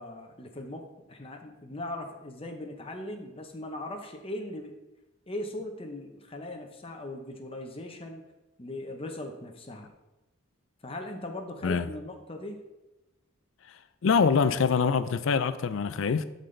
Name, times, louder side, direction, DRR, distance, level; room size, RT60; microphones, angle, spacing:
voice 1, 0.0-4.8 5.3-8.2 8.6-9.9 10.8-12.6, left 1 dB, 25° left, 0.7 m, -39 dB
voice 2, 14.0-16.2, left 5 dB, 65° left, 0.4 m, -24 dB
11.5 x 4.0 x 3.3 m
head